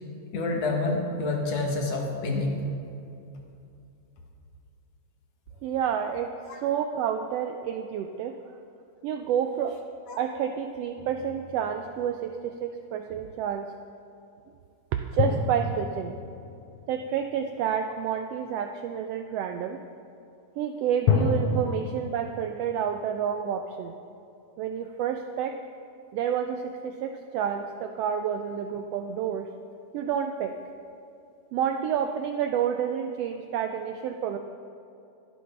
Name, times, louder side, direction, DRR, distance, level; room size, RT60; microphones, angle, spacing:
voice 1, 0.3-2.6 6.5-6.6 10.1-10.2, left 3 dB, 65° left, 1 dB, 2.4 m, -28 dB
voice 2, 5.6-8.4 9.0-9.8 10.2-13.7 15.1-16.2 16.9-19.8 20.6-24.0 24.6-25.6 26.1-29.5 29.9-30.6 31.5-34.4, right 8 dB, 85° right, 6 dB, 1.4 m, -29 dB
sound 1, 11.0-12.3 15.2-17.8 21.1-22.0, left 4 dB, 80° left, 2.1 m, -29 dB
23.5 x 8.0 x 3.3 m, 2.6 s
omnidirectional pair, 3.3 m